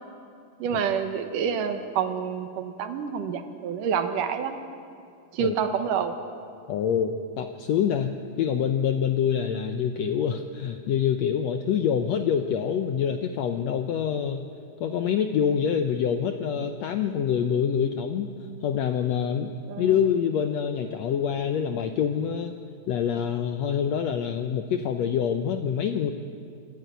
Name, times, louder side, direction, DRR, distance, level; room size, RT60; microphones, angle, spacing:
voice 1, 0.6-4.6 5.3-6.1 19.7-19.9, right 7 dB, 75° right, 8 dB, 2.6 m, -28 dB
voice 2, 6.7-14.5 14.8-18.3 18.6-19.5 19.8-22.5 22.9-26.1, left 8 dB, 75° left, 7 dB, 1.5 m, -26 dB
25.5 x 12.5 x 9.2 m, 2.4 s
omnidirectional pair, 3.9 m